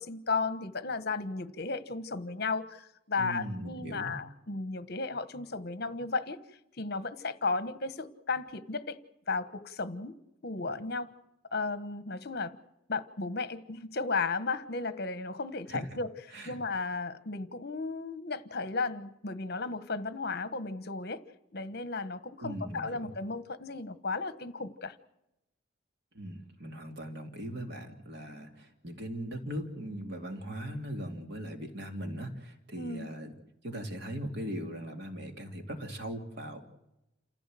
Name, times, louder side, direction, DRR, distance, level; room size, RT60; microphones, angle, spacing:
voice 1, 0.0-6.4 6.8-9.0 9.3-10.1 10.4-11.1 11.5-12.6 12.9-21.2 21.5-24.9 32.8-33.1, left 3 dB, 50° left, 12 dB, 1.3 m, -34 dB
voice 2, 3.2-4.2 15.7-16.0 16.3-16.6 22.4-23.1 26.1-33.3 33.6-36.6, equal, 55° right, 4 dB, 2.8 m, -39 dB
28.5 x 15.5 x 7.7 m, 0.89 s
head